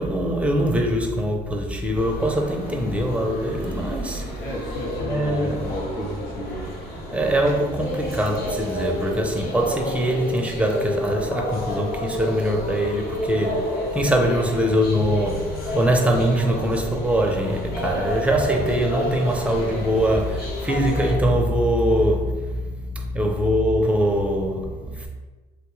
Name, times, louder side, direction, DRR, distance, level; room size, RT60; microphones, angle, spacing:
voice 1, 0.0-4.3 5.0-5.7 7.1-25.1, equal, 5° right, 0.5 m, -23 dB
sound 1, 1.9-21.1, left 1 dB, 65° left, 1.1 m, -30 dB
voice 2, 4.3-6.7, equal, 85° left, 0.9 m, -32 dB
3.4 x 2.2 x 3.0 m
cardioid pair, 110°, 17 cm